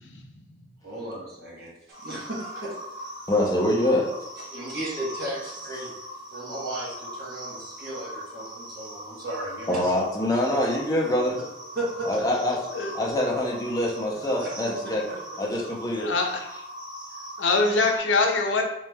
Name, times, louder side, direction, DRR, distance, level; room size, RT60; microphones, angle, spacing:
voice 1, 0.8-3.1 4.5-5.9 6.3-9.9 11.7-12.3 14.4-14.7 15.1-15.4, right 1 dB, 55° right, -6 dB, 1.2 m, -35 dB
sound 1, 1.9-18.0, equal, 25° right, 0.9 m, -41 dB
voice 2, 3.3-4.1 9.7-11.4 12.1-12.7 12.9-15.0 15.4-16.1, left 1 dB, 20° left, -2 dB, 0.6 m, -25 dB
voice 3, 16.0-16.3 17.4-18.6, left 3 dB, 85° left, 3 dB, 0.6 m, -23 dB
3.3 x 3.1 x 3.4 m, 0.87 s
head